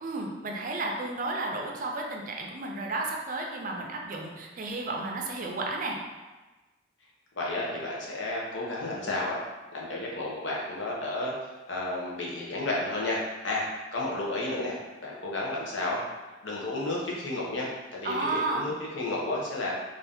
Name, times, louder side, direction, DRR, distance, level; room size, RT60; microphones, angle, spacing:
voice 1, 0.0-6.0 18.0-18.7, right 2 dB, 45° right, 1 dB, 0.4 m, -32 dB
voice 2, 7.4-9.4 9.7-11.3 11.7-16.1 16.4-19.7, left 2 dB, 85° left, -3 dB, 0.7 m, -32 dB
2.6 x 2.5 x 3.5 m, 1.2 s
head